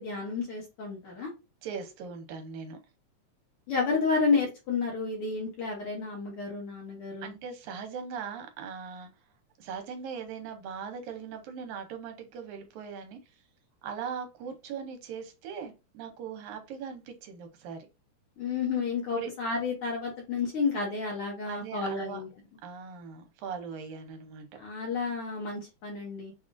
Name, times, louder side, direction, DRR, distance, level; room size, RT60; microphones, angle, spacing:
voice 1, 0.0-1.3 3.7-7.3 18.4-22.3 24.6-26.3, left 4 dB, 70° left, 1.3 m, -31 dB
voice 2, 1.6-2.8 7.2-9.1 9.6-13.2 13.8-17.9 19.1-19.3 21.5-22.2 22.6-24.6, right 6 dB, 75° right, 2.1 m, -40 dB
5.5 x 2.4 x 2.5 m
omnidirectional pair, 3.5 m